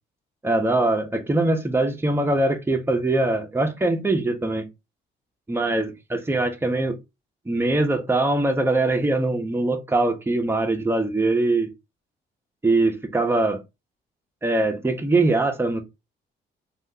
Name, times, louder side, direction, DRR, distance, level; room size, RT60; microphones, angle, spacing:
voice 1, 0.4-4.7 5.5-7.0 7.5-11.7 12.6-13.6 14.4-15.8, right 2 dB, 10° right, 0.7 m, -22 dB
3.4 x 2.4 x 2.7 m
cardioid pair, 90°, 20 cm